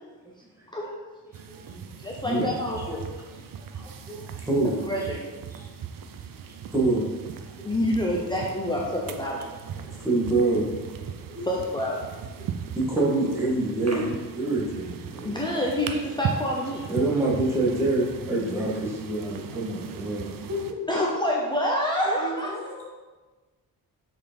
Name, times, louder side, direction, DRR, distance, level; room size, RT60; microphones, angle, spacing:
sound 1, 1.3-20.7, right 7 dB, 65° right, 0.6 m, -38 dB
voice 1, 2.0-3.0 4.8-5.2 7.6-9.9 11.4-12.0 15.2-16.8 20.9-22.6, left 1 dB, 10° left, -3 dB, 0.8 m, -27 dB
voice 2, 3.7-4.8 5.5-5.7 6.7-7.0 7.6-7.7 10.0-10.7 11.2-11.5 12.8-14.1 14.4-15.4 16.9-20.3, right 2 dB, 5° right, -5 dB, 1.7 m, -26 dB
voice 3, 20.5-21.1 22.2-22.9, left 2 dB, 45° right, -3 dB, 1.8 m, -34 dB
6.4 x 5.2 x 5.3 m, 1.3 s
wide cardioid pair, 155°, 36 cm